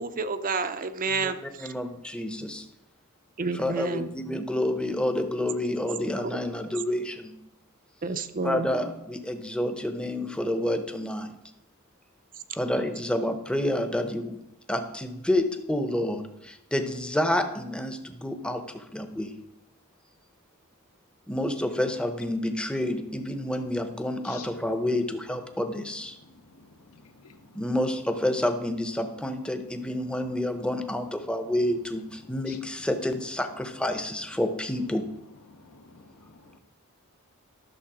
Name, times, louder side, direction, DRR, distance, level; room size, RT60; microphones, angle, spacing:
voice 1, 0.0-1.7 3.4-4.1 8.0-8.7, right 4 dB, 40° right, 10 dB, 0.6 m, -30 dB
voice 2, 1.6-2.6 3.6-7.1 8.4-11.3 12.6-14.3 14.7-16.2 16.7-18.0 18.2-18.6 18.9-19.3 21.3-26.1 27.6-32.0 32.3-35.0, left 1 dB, 5° left, 8 dB, 0.7 m, -28 dB
voice 3, 26.6-27.6 32.5-32.6 35.5-36.6, left 6 dB, 75° left, 8 dB, 0.9 m, -50 dB
12.0 x 6.6 x 4.9 m, 0.83 s
head